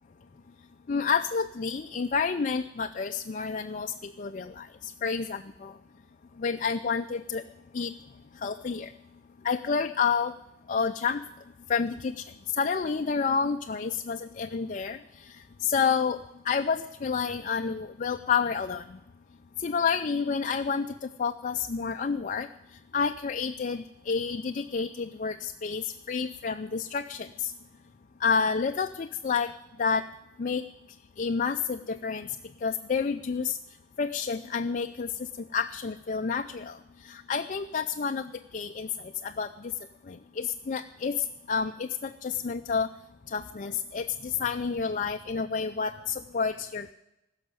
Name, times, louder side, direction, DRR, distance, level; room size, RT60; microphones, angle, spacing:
voice 1, 0.9-5.8 6.4-7.4 7.7-8.0 8.4-8.9 9.4-10.3 10.7-11.2 11.7-12.3 12.5-19.0 19.6-22.5 22.9-27.5 28.2-29.5 29.8-30.1 30.4-30.6 31.2-32.4 32.6-33.6 34.0-36.8 37.0-39.7 40.1-42.9 43.3-46.9, left 5 dB, 40° left, 7 dB, 0.4 m, -29 dB
16.0 x 6.5 x 9.6 m, 0.91 s
head